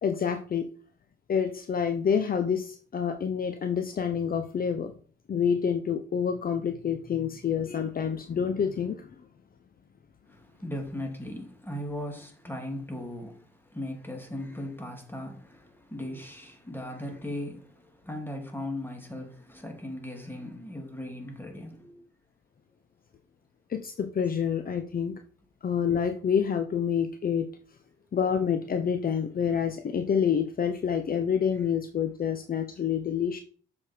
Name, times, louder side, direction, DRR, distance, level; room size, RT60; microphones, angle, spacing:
voice 1, 0.0-0.6 1.3-4.9 5.3-9.1 23.7-25.2 25.6-27.5 28.1-33.4, left 7 dB, 45° left, 0.9 m, -27 dB
voice 2, 10.3-22.0, left 1 dB, 10° left, 2.9 m, -38 dB
7.0 x 5.4 x 4.6 m
hypercardioid pair, 50°, 21 cm